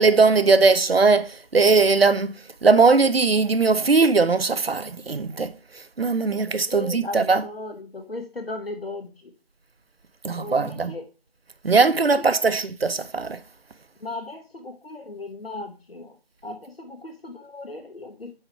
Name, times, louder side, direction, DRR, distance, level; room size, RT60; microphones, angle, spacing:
voice 1, 0.0-2.4 2.6-5.5 6.0-7.4 10.2-11.0 11.6-13.4, right 4 dB, 70° right, 0.8 m, -19 dB
voice 2, 6.7-9.1 10.3-11.0 12.4-12.6 14.0-16.1 16.4-18.3, left 2 dB, 65° left, 1.2 m, -36 dB
8.9 x 3.8 x 4.4 m
figure-of-eight pair, 170°, 31 cm